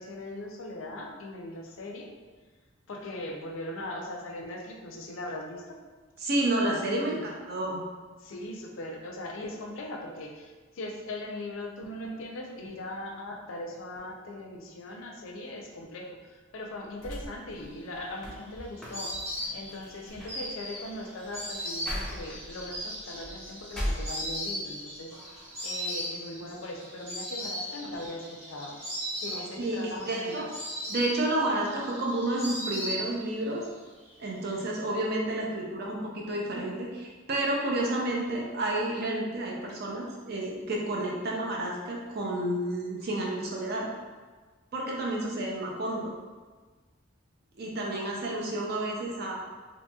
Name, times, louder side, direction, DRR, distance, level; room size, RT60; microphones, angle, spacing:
voice 1, 0.0-2.1 2.9-5.8 6.8-7.2 8.2-19.1 19.5-28.8 29.2-30.5 30.9-31.0, left 1 dB, 80° left, 1 dB, 0.5 m, -40 dB
voice 2, 6.2-7.8 29.6-30.4 30.9-33.7 34.2-43.9 44.7-46.1 47.6-49.4, right 1 dB, 55° right, -2 dB, 0.5 m, -30 dB
sound 1, 17.0-24.7 25.1-25.9, equal, 5° left, 0.4 m, -40 dB
Insect, 17.8-33.5 33.7-34.6, equal, 30° right, 0.9 m, -38 dB
2.8 x 2.7 x 2.2 m, 1.4 s
head